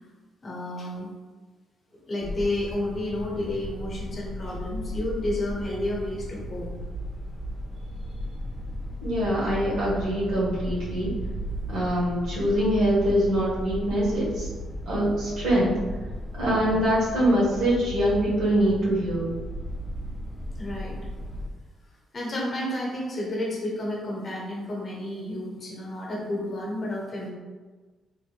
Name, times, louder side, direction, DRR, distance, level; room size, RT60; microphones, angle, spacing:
voice 1, 0.4-1.1 2.1-6.7 16.5-16.8 20.6-21.0 22.1-27.3, left 1 dB, 35° left, -3 dB, 0.8 m, -31 dB
sound 1, 2.2-21.5, equal, 5° right, 0.4 m, -35 dB
voice 2, 9.0-11.1 11.7-14.5 14.8-15.8 16.3-19.4, equal, 75° right, -6 dB, 1.4 m, -24 dB
3.6 x 2.1 x 3.2 m, 1.3 s
cardioid pair, 150°, 0 cm